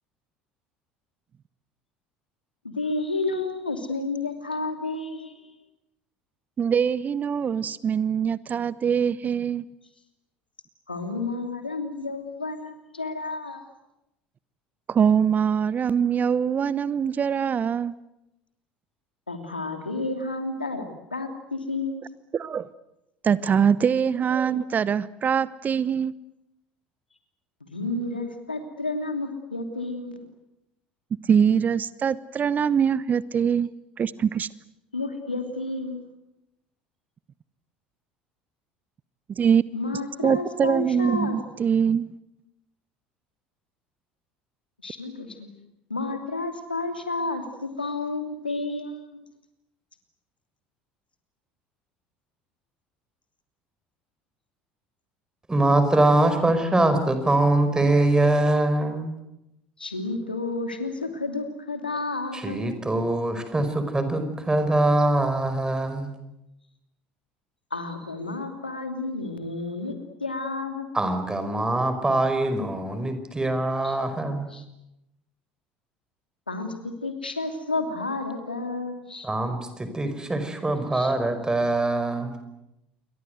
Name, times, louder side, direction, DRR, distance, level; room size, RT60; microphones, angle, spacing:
voice 1, 2.6-5.5 10.9-13.6 19.3-22.0 27.7-30.1 34.9-36.0 39.7-41.4 44.8-45.5 45.9-49.2 59.8-62.7 67.7-69.9 70.2-70.9 73.8-74.0 74.5-74.6 76.5-76.7 77.0-79.3 80.9-81.1, left 3 dB, 90° left, 6 dB, 2.9 m, -31 dB
voice 2, 6.6-9.7 14.9-17.9 22.3-22.7 23.2-26.1 31.3-33.7 34.0-34.5 39.3-39.6 40.2-42.1, right 7 dB, 35° right, 19 dB, 0.9 m, -23 dB
voice 3, 55.5-59.1 62.4-66.1 70.9-74.5 79.2-82.3, right 2 dB, 15° right, 9 dB, 5.3 m, -23 dB
28.5 x 23.5 x 8.0 m, 0.89 s
figure-of-eight pair, 65°, 5 cm